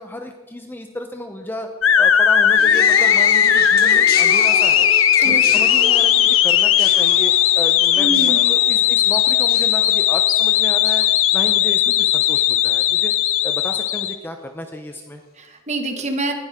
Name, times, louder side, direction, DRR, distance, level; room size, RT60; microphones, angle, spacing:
voice 1, 0.0-1.7 2.0-4.9 5.2-11.1 11.3-13.1 13.4-15.2, left 1 dB, 10° left, 5 dB, 0.7 m, -32 dB
sound 1, 1.8-14.1, left 10 dB, 60° left, 0.7 m, -16 dB
sound 2, 2.6-11.9 12.2-12.7 13.6-13.7, left 4 dB, 45° left, 1.3 m, -32 dB
voice 2, 7.9-8.4 15.4-16.3, right 2 dB, 30° right, 5 dB, 1.4 m, -26 dB
19.0 x 12.0 x 3.7 m, 1.2 s
head